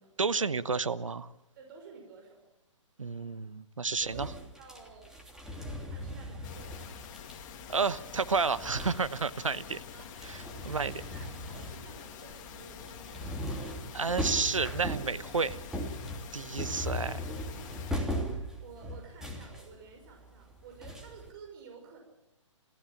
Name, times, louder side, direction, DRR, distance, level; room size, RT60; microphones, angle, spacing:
voice 1, 0.2-1.3 3.0-4.3 7.7-9.8 10.2-10.9 13.9-15.6 16.3-17.2, right 4 dB, 85° right, 14 dB, 1.1 m, -31 dB
voice 2, 1.6-2.4 4.0-5.2 5.5-6.8 9.9-10.1 10.7-13.7 17.7-22.0, right 5 dB, 45° right, 2 dB, 5.8 m, -52 dB
sound 1, 4.0-9.5 9.8-21.3, equal, 5° right, 3.0 m, -39 dB
sound 2, 6.4-17.9, left 8 dB, 35° left, 2.3 m, -47 dB
26.0 x 15.5 x 7.4 m, 0.89 s
hypercardioid pair, 135°, 16 cm